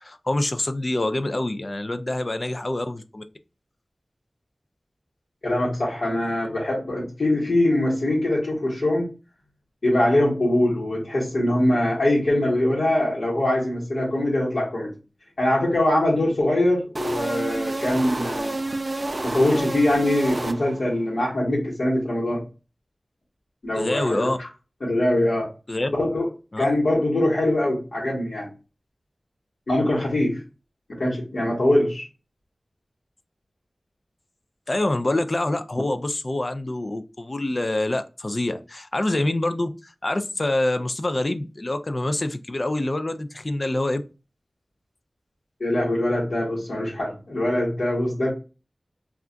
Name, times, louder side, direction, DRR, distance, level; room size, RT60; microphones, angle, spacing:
voice 1, 0.0-3.2 23.7-24.4 25.7-25.9 26.5-26.7 34.7-44.0, left 1 dB, 45° left, 9 dB, 0.3 m, -26 dB
voice 2, 5.4-9.1 9.8-14.9 15.4-18.6 19.2-22.4 23.6-24.5 24.8-25.5 25.9-26.3 26.6-28.5 29.7-30.4 30.9-32.1 45.6-48.3, left 1 dB, 75° left, -6 dB, 1.1 m, -23 dB
sound 1, 17.0-21.0, right 2 dB, 45° right, 0.3 m, -29 dB
2.4 x 2.2 x 3.7 m, 0.31 s
wide cardioid pair, 55°, 0 cm